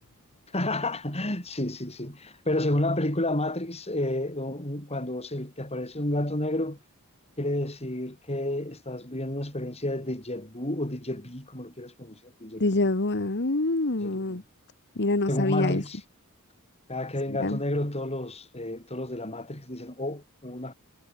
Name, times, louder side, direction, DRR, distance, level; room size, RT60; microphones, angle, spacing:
voice 1, 0.5-6.8 7.4-12.6 14.0-14.4 15.3-16.0 16.9-20.7, left 1 dB, 30° left, 7.6 m, -31 dB
voice 2, 12.6-14.4 15.0-15.8 17.4-17.6, left 2 dB, 55° left, 1.5 m, -25 dB
head